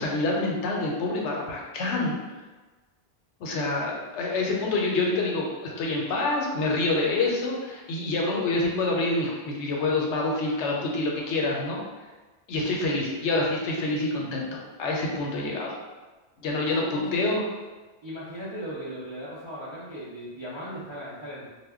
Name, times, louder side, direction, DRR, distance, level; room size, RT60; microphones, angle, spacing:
voice 1, 0.0-2.2 3.4-11.8 12.5-15.8 16.4-17.4, left 2 dB, 80° left, -1 dB, 0.9 m, -27 dB
voice 2, 16.5-17.2 18.0-21.5, equal, 50° right, -10 dB, 0.3 m, -38 dB
2.1 x 2.1 x 3.5 m, 1.2 s
omnidirectional pair, 1.2 m